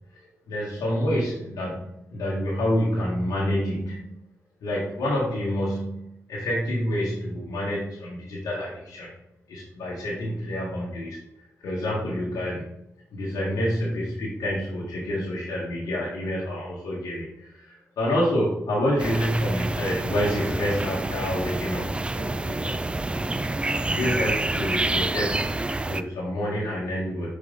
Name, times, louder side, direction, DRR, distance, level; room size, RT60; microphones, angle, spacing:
voice 1, 0.1-4.2 4.6-9.1 9.5-11.2 11.6-12.6 13.1-21.9 22.2-22.7 23.8-25.4 25.8-27.3, equal, 85° left, -6 dB, 1.6 m, -28 dB
sound 1, 19.0-26.0, right 2 dB, 20° right, 0.4 m, -28 dB
5.3 x 4.6 x 4.0 m, 0.80 s
cardioid pair, 55°, 6 cm